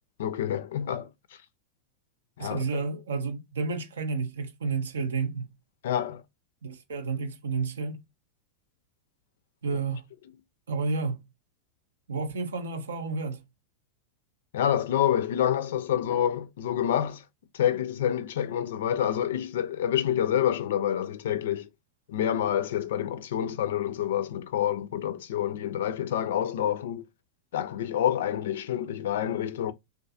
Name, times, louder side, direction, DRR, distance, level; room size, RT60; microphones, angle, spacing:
voice 1, 0.2-1.1 2.4-2.6 5.8-6.2 14.5-17.2 17.5-21.7 22.1-27.1 27.5-29.7, left 10 dB, 75° left, 0.3 m, -27 dB
voice 2, 2.4-5.5 6.6-8.0 9.6-10.1 10.7-11.3 12.1-13.5, right 4 dB, 90° right, 0.5 m, -31 dB
2.3 x 2.3 x 2.6 m
hypercardioid pair, 105°, 0 cm